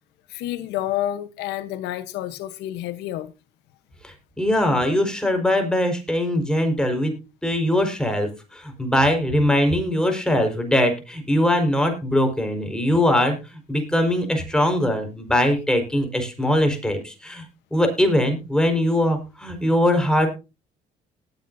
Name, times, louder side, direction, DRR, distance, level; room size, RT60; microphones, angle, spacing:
voice 1, 0.3-3.3, left 13 dB, 85° left, 1.1 m, -29 dB
voice 2, 4.0-7.1 7.4-13.4 13.7-17.4 17.7-20.3, left 1 dB, 5° left, 4.8 m, -21 dB
19.0 x 9.3 x 2.7 m
cardioid pair, 110°, 17 cm